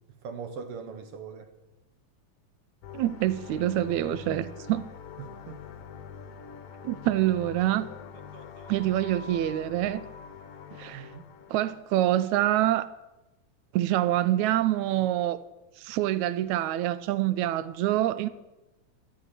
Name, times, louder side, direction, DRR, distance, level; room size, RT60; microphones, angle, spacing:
voice 1, 0.2-1.5 5.2-5.6 8.3-8.7 10.9-11.2, right 6 dB, 60° right, 1.6 m, -41 dB
sound 1, 2.8-11.8, left 6 dB, 65° left, 1.6 m, -44 dB
voice 2, 2.9-4.8 6.8-7.9 8.7-10.0 10.8-11.1 11.5-12.9 13.7-15.4 15.8-18.3, right 13 dB, 80° right, 1.9 m, -26 dB
13.0 x 6.8 x 9.6 m
omnidirectional pair, 3.5 m